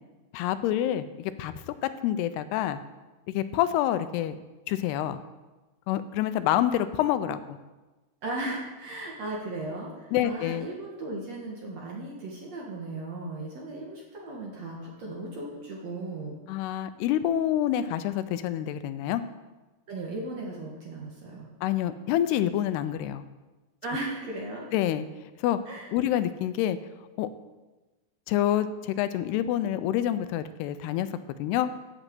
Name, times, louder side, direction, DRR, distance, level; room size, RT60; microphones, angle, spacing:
voice 1, 0.3-2.8 3.3-4.4 4.7-5.2 5.9-7.6 10.1-10.7 16.5-19.2 21.6-23.2 24.7-25.1 25.4-25.6 25.9-26.8 27.2-27.3 28.3-31.1 31.4-31.7, left 12 dB, 85° left, 12 dB, 2.6 m, -27 dB
voice 2, 8.2-16.4 19.9-21.5 23.8-24.7 25.7-25.9, right 2 dB, 55° right, -2 dB, 2.1 m, -36 dB
8.4 x 8.0 x 7.7 m, 1.2 s
omnidirectional pair, 4.7 m